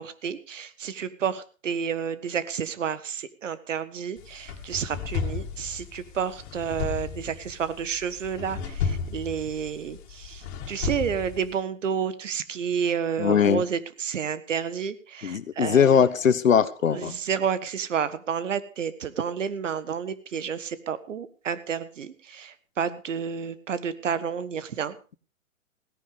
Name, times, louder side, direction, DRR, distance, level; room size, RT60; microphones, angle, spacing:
voice 1, 0.0-16.1 16.9-25.0, right 7 dB, 65° right, 14 dB, 1.6 m, -30 dB
sound 1, 4.2-11.5, left 6 dB, 40° left, 2.7 m, -34 dB
voice 2, 13.2-13.6 15.2-17.1, left 7 dB, 70° left, 14 dB, 1.4 m, -20 dB
17.0 x 10.5 x 4.9 m, 0.36 s
hypercardioid pair, 130°, 40 cm